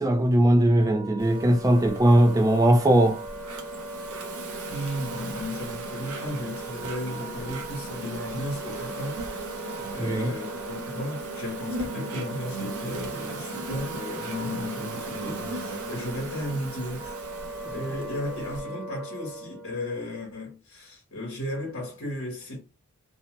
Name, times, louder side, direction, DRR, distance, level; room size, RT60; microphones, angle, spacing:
voice 1, 0.0-3.2 10.0-10.3, right 1 dB, 15° right, 0.4 m, -20 dB
Wind instrument woodwind instrument, 0.6-19.7, right 2 dB, 30° left, 1.1 m, -40 dB
Insect, 1.2-18.6, right 2 dB, 75° right, 0.7 m, -38 dB
voice 2, 4.7-9.2 9.5-9.6 9.9-17.2 17.7-22.6, left 1 dB, 65° left, 1.1 m, -34 dB
2.7 x 2.1 x 3.0 m
head